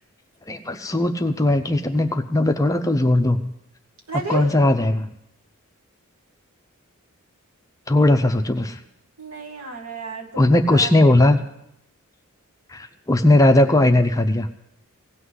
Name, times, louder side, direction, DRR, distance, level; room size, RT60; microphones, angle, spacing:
voice 1, 0.5-3.5 4.3-5.1 7.9-8.8 10.4-11.4 12.7-14.5, left 1 dB, 15° left, 7 dB, 0.6 m, -18 dB
voice 2, 4.1-4.5 9.2-11.4, right 3 dB, 80° right, 1 dB, 2.2 m, -32 dB
16.5 x 6.0 x 8.0 m, 0.79 s
head